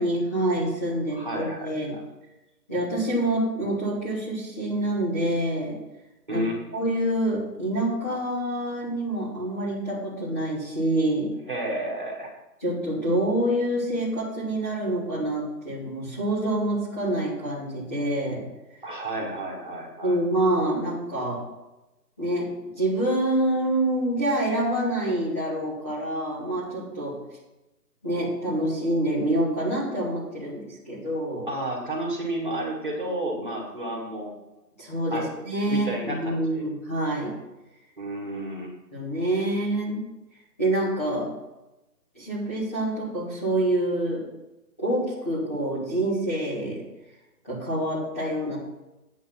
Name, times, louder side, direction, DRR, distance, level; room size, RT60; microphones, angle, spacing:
voice 1, 0.0-2.0 2.7-5.8 6.3-6.4 6.7-11.3 12.6-18.4 20.0-21.4 22.2-22.5 22.8-27.2 28.0-31.5 34.8-37.4 38.9-40.1 40.6-41.3 42.1-44.2 44.8-46.8 47.4-48.6, right 1 dB, 10° left, -12 dB, 2.0 m, -26 dB
voice 2, 1.1-2.0 6.3-6.6 11.5-12.3 18.8-20.2 31.5-34.3 35.1-35.4 35.7-36.6 38.0-38.7, right 1 dB, 30° right, -2 dB, 2.2 m, -31 dB
9.4 x 8.6 x 5.9 m, 0.99 s
figure-of-eight pair, 180°, 50 cm